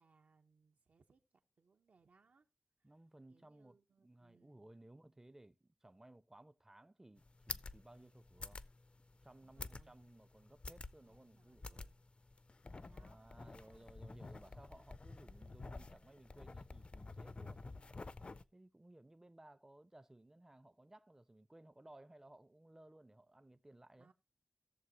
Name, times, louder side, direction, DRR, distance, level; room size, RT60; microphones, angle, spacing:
voice 1, 0.0-2.5 2.8-2.9 3.3-4.7 9.4-10.0 11.0-12.0 12.8-14.4 15.2-16.0 17.3-18.3 23.9-24.1, right 4 dB, 85° right, 1.0 m, -72 dB
voice 2, 2.8-8.6 9.2-11.9 12.7-17.6 18.5-24.1, right 1 dB, 15° right, 0.5 m, -60 dB
sound 1, 7.2-18.4, left 3 dB, 45° left, 0.5 m, -50 dB
17.0 x 7.0 x 2.9 m
wide cardioid pair, 100°, 3 cm